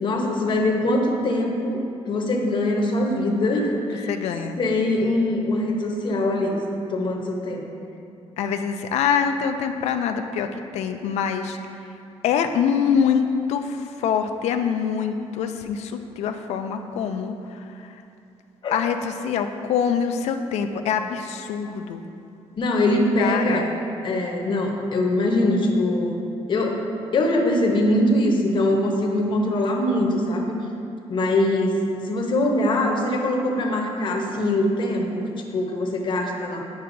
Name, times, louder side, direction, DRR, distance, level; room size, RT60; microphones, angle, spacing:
voice 1, 0.0-4.1 4.6-6.6 6.9-7.6 18.6-18.7 22.6-23.7 24.0-26.1 26.5-26.8 27.1-30.5 31.1-35.1 35.4-36.7, left 1 dB, 45° left, 1 dB, 0.8 m, -22 dB
voice 2, 4.1-4.6 8.4-11.6 12.2-18.0 18.7-22.1 23.2-23.7, left 7 dB, 80° left, 6 dB, 0.4 m, -25 dB
9.4 x 5.5 x 2.6 m, 2.6 s
cardioid pair, 135°, 11 cm